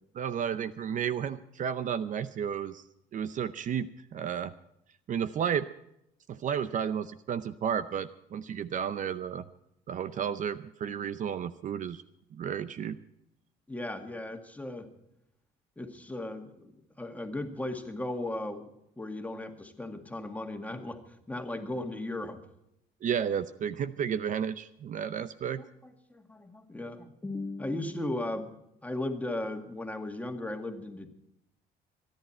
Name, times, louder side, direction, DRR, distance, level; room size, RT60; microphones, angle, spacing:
voice 1, 0.2-2.8 3.1-4.5 5.1-5.7 6.3-9.4 9.9-12.0 12.3-13.0 23.0-25.6, right 8 dB, 50° right, 13 dB, 0.7 m, -32 dB
voice 2, 13.7-14.9 15.8-18.7 19.0-21.0 21.3-22.4 25.8-28.5 28.8-31.1, left 1 dB, 10° left, 5 dB, 2.0 m, -36 dB
25.0 x 10.5 x 4.4 m, 0.81 s
cardioid pair, 110°, 17 cm